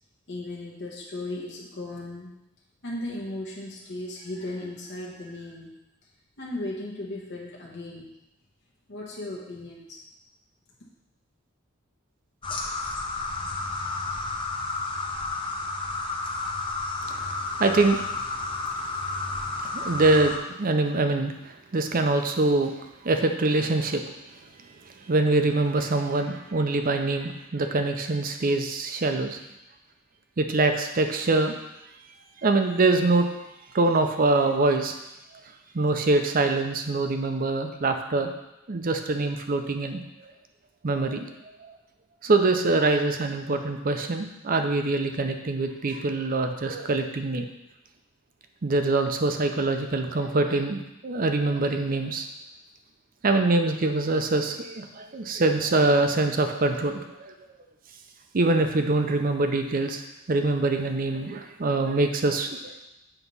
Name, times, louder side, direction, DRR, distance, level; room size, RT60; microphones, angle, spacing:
voice 1, 0.3-2.4 2.8-5.7 6.4-8.1 8.9-10.0, left 1 dB, 55° left, -4 dB, 1.1 m, -36 dB
sound 1, 12.4-20.4, left 3 dB, 25° left, 0.7 m, -31 dB
voice 2, 17.6-18.0 19.6-22.7 23.0-24.0 25.1-29.4 30.4-31.5 32.4-33.3 33.7-34.9 35.7-38.3 38.7-40.3 40.8-41.3 41.6-41.7 42.2-47.5 48.6-52.3 53.2-57.3 58.3-60.0 60.3-62.7, right 2 dB, 45° right, 6 dB, 0.6 m, -24 dB
8.0 x 3.0 x 5.4 m, 0.92 s
head